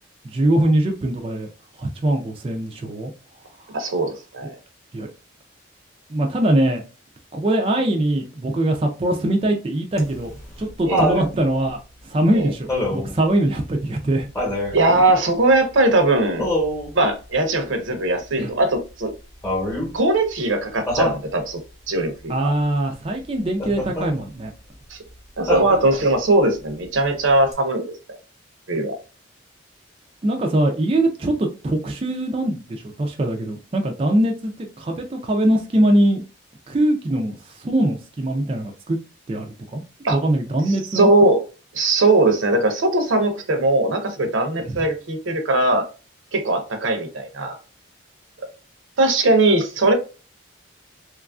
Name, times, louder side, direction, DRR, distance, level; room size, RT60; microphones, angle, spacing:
voice 1, 0.2-1.5 1.8-3.1 3.6-3.7 4.9-5.1 6.1-6.8 7.3-10.3 10.6-11.8 12.0-14.3 18.4-18.5 22.3-24.5 30.2-36.2 36.7-39.0 39.3-41.1 44.6-44.9, right 1 dB, 30° right, 0.3 m, -22 dB
voice 2, 3.7-4.6 10.9-11.1 12.3-12.5 14.7-16.5 16.9-19.1 19.9-21.6 21.9-22.5 24.9-25.0 25.4-27.9 28.7-29.0 40.0-40.2 40.9-41.4 41.7-45.9 46.3-47.6 49.0-49.9, right 2 dB, 80° right, 0.7 m, -19 dB
Laughter, 10.0-11.3 12.7-13.2 14.3-14.8 16.4-16.9 19.4-19.9 20.9-21.2 23.6-24.1 25.5-26.1 27.5-27.6, equal, 15° left, 0.9 m, -24 dB
3.0 x 2.4 x 2.3 m
head